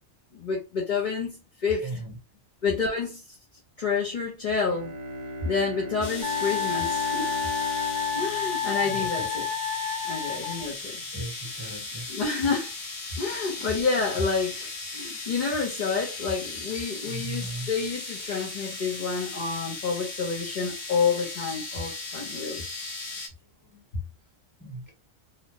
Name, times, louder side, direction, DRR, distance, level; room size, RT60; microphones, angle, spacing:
voice 1, 0.3-1.9 2.6-3.4 3.8-4.9 5.4-7.4 8.1-9.5 10.0-11.0 12.1-12.7 13.2-22.6, left 5 dB, 40° left, 1.1 m, -29 dB
voice 2, 1.7-2.2 8.8-9.3 10.1-10.5 11.1-12.1 13.2-13.7 17.1-17.7 23.1-23.2 23.6-23.8 24.6-24.9, right 1 dB, 20° right, 0.7 m, -38 dB
Bowed string instrument, 4.6-9.6, equal, 45° right, 0.8 m, -38 dB
sound 1, 6.0-23.3, left 3 dB, 75° left, 1.3 m, -37 dB
Wind instrument woodwind instrument, 6.2-10.7, left 7 dB, 5° left, 1.3 m, -30 dB
2.9 x 2.4 x 2.9 m
omnidirectional pair, 1.3 m